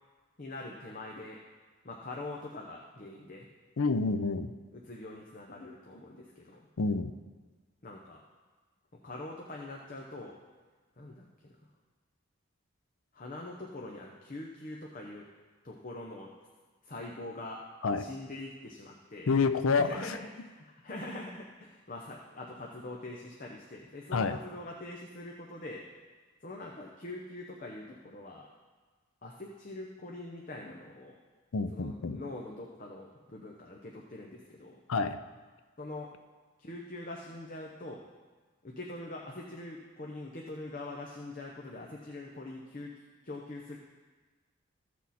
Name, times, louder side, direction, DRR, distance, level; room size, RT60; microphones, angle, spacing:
voice 1, 0.4-1.4 1.8-3.5 4.7-6.7 7.8-8.2 9.0-10.4 11.0-11.5 13.1-15.2 15.6-16.3 16.8-17.6 18.0-19.3 19.8-25.8 26.4-28.5 29.2-31.2 31.7-34.8 35.8-36.1 36.6-38.0 38.6-42.9 43.2-43.8, left 2 dB, 40° left, -1 dB, 0.8 m, -43 dB
voice 2, 3.8-4.5 6.8-7.1 17.8-18.1 19.3-20.2 24.1-24.4 31.5-32.2 34.9-35.2, left 4 dB, 75° left, 10 dB, 0.5 m, -28 dB
14.5 x 6.3 x 4.2 m, 1.4 s
head